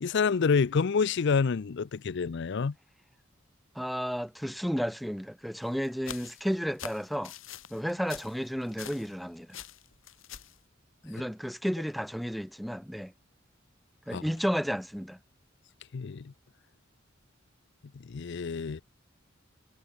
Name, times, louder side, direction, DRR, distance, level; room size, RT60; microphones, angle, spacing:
voice 1, 0.0-2.7 14.1-14.2 15.9-16.3 17.9-18.8, left 5 dB, 60° left, 0.5 m, -28 dB
voice 2, 3.8-7.3 7.7-9.6 11.0-13.1 14.1-15.2, equal, ahead, 0.5 m, -32 dB
sound 1, 5.6-9.2 9.5-10.6, left 8 dB, 85° left, 4.3 m, -44 dB
head